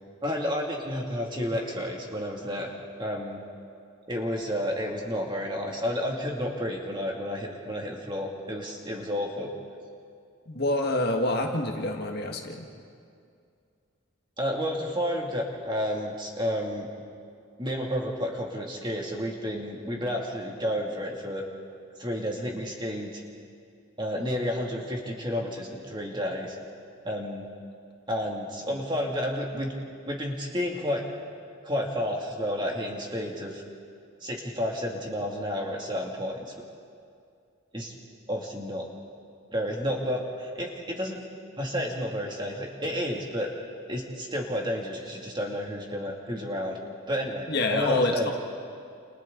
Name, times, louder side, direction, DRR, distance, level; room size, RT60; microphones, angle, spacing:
voice 1, 0.2-2.7 3.0-3.4 4.1-9.5 14.4-16.9 17.6-21.5 22.0-23.2 24.0-26.6 27.0-27.5 28.1-29.7 30.1-31.0 31.6-33.6 34.2-36.4 37.7-37.9 38.3-38.9 39.5-41.2 41.6-43.5 43.9-46.8 47.1-48.3, equal, 20° right, -1 dB, 2.6 m, -31 dB
voice 2, 10.5-12.7 47.5-48.3, left 2 dB, 45° left, 2 dB, 1.9 m, -27 dB
29.5 x 29.0 x 4.0 m, 2.4 s
head